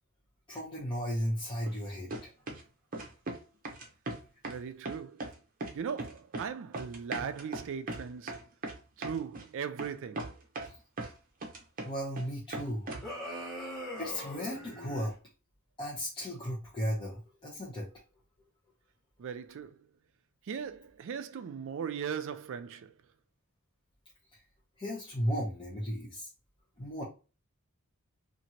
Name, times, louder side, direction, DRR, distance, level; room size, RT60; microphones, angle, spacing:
voice 1, 0.5-2.3 11.8-12.9 14.0-15.1 15.8-17.9 24.8-26.3 26.8-27.0, equal, 20° left, 0.7 m, -35 dB
sound 1, 1.7-1.8 2.1-2.6 2.9-3.4 3.6-4.6 4.8-5.3 5.6-6.5 6.7-9.4 9.8-9.9 10.2-11.1 11.4-12.3 12.5-13.1, right 2 dB, 40° right, 0.7 m, -39 dB
voice 2, 4.5-5.2 5.7-8.4 9.0-10.3 19.2-19.8 20.5-22.9, right 7 dB, 60° right, 0.4 m, -38 dB
sound 2, 13.0-15.1, equal, ahead, 1.2 m, -41 dB
2.9 x 2.5 x 2.8 m
head